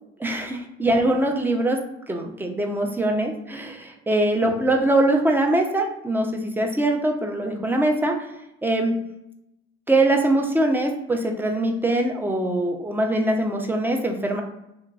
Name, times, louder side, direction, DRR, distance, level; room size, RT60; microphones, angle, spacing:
voice 1, 0.2-8.2 8.6-9.0 9.9-14.4, right 1 dB, 5° right, 2 dB, 0.4 m, -22 dB
2.8 x 2.4 x 2.3 m, 0.86 s
hypercardioid pair, 70°, 33 cm